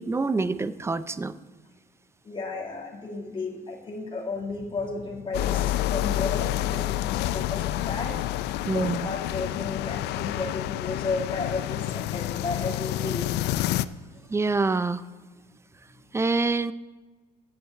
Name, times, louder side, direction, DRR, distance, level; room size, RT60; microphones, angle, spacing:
voice 1, 0.0-1.3 8.7-9.0 14.3-15.0 16.1-16.7, right 3 dB, 15° right, 14 dB, 0.5 m, -26 dB
voice 2, 2.2-8.3 8.6-13.3 14.0-14.5, left 3 dB, 30° left, 0 dB, 2.3 m, -33 dB
sound 1, 5.3-13.8, left 14 dB, 80° left, 0.4 m, -28 dB
8.5 x 7.8 x 7.5 m, 1.3 s
cardioid pair, 110°, 17 cm